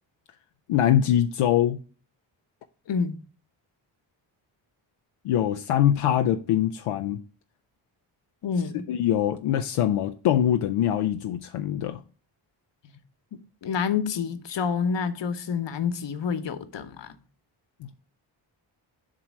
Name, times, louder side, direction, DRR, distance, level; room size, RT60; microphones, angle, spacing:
voice 1, 0.7-1.8 5.2-7.2 8.9-12.0 17.8-18.0, left 10 dB, 85° left, 0.6 m, -23 dB
voice 2, 8.4-8.9 13.6-17.1, left 6 dB, 60° left, 1.0 m, -28 dB
7.6 x 3.1 x 6.1 m
supercardioid pair, 50°, 50 cm